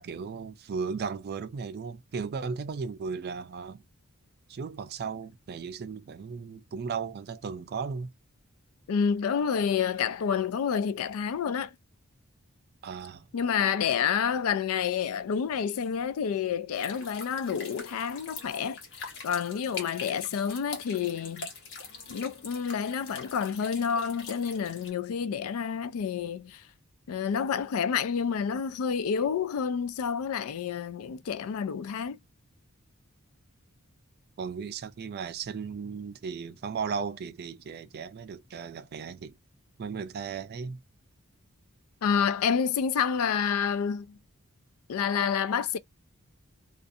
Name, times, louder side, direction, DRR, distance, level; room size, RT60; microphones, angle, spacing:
voice 1, 0.0-3.8 4.5-8.1 12.8-13.3 34.4-39.4 39.8-40.8, right 5 dB, 45° right, 0.4 m, -36 dB
voice 2, 8.9-11.7 13.3-21.5 22.1-26.6 27.1-32.2 42.0-44.2 44.9-45.8, left 7 dB, 75° left, 0.4 m, -29 dB
sound 1, 16.7-24.9, left 4 dB, 55° left, 1.1 m, -43 dB
2.4 x 2.4 x 2.6 m
head